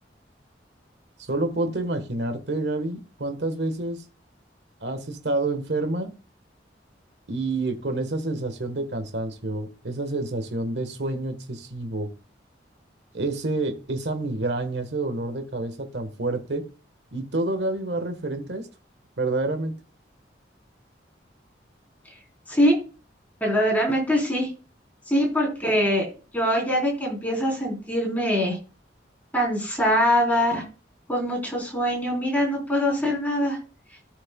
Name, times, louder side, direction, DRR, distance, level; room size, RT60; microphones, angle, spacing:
voice 1, 1.3-4.0 4.8-6.1 7.3-12.1 13.1-16.6 17.1-18.7 19.2-19.7, right 2 dB, 70° right, 8 dB, 1.3 m, -28 dB
voice 2, 23.4-24.5 25.1-28.6 29.3-30.6 31.1-33.6, equal, 10° left, -1 dB, 3.8 m, -23 dB
13.5 x 6.5 x 2.3 m, 0.34 s
head